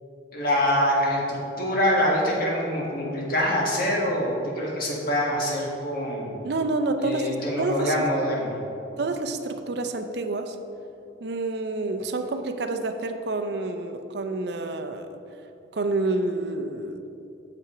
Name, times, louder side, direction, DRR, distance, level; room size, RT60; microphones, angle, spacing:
voice 1, 0.3-6.3 7.0-8.5, equal, 50° left, -3 dB, 1.6 m, -25 dB
voice 2, 6.4-8.0 9.0-10.6 11.2-15.1 15.7-17.0, right 2 dB, 60° right, 7 dB, 0.5 m, -28 dB
6.9 x 5.7 x 4.9 m, 2.8 s
head